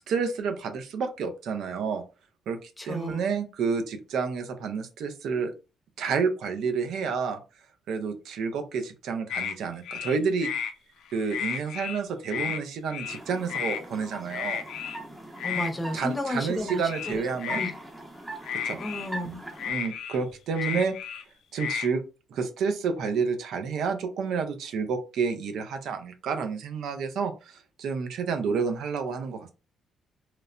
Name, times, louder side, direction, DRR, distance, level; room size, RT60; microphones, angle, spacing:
voice 1, 0.1-2.0 2.5-5.5 6.0-7.4 7.9-10.5 11.1-14.6 15.9-17.6 18.5-18.8 19.7-20.9 21.5-22.0 22.3-29.5, right 5 dB, 75° right, 7 dB, 0.6 m, -29 dB
voice 2, 2.8-3.3 15.4-17.2 17.5-17.7 18.8-19.4 20.7-20.8, left 1 dB, 15° left, 5 dB, 0.7 m, -33 dB
sound 1, 9.3-9.5 9.8-10.7 11.1-12.0 12.3-12.6 12.9-13.2 13.5-13.8 14.3-15.0 15.4-15.7 16.8-17.7 18.4-19.1 19.6-21.2 21.5-21.9, left 8 dB, 80° left, 0.3 m, -32 dB
sound 2, 13.0-19.7, right 2 dB, 15° right, 0.8 m, -42 dB
3.0 x 2.0 x 2.4 m, 0.31 s
cardioid pair, 90°, 0 cm